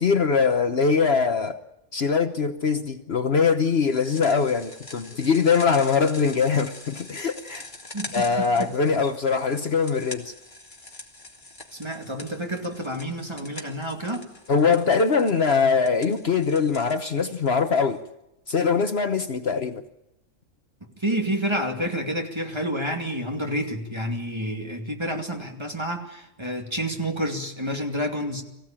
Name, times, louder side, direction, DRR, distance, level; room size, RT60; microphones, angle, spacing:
voice 1, 0.0-1.6 1.9-7.7 8.1-10.3 14.5-18.0 18.5-19.8, left 5 dB, 55° left, 1.2 m, -22 dB
sound 1, 3.6-18.0, left 2 dB, 35° left, 2.7 m, -44 dB
voice 2, 7.9-8.5 11.7-14.3 21.0-28.4, equal, 20° right, 2.5 m, -29 dB
24.0 x 16.0 x 8.9 m
omnidirectional pair, 1.3 m